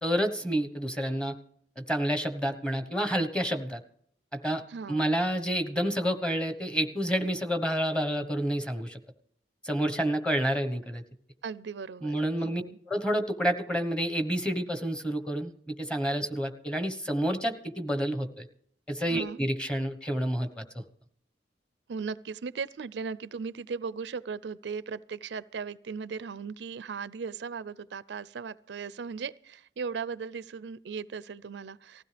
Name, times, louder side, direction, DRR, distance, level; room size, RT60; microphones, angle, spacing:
voice 1, 0.0-1.3 1.8-3.8 4.3-4.6 4.9-9.0 9.6-11.0 12.0-18.5 18.9-20.8, equal, 5° left, 1.2 m, -29 dB
voice 2, 4.7-5.0 11.4-12.8 19.1-19.4 21.9-32.0, right 5 dB, 80° right, 0.5 m, -37 dB
19.5 x 15.5 x 3.4 m
head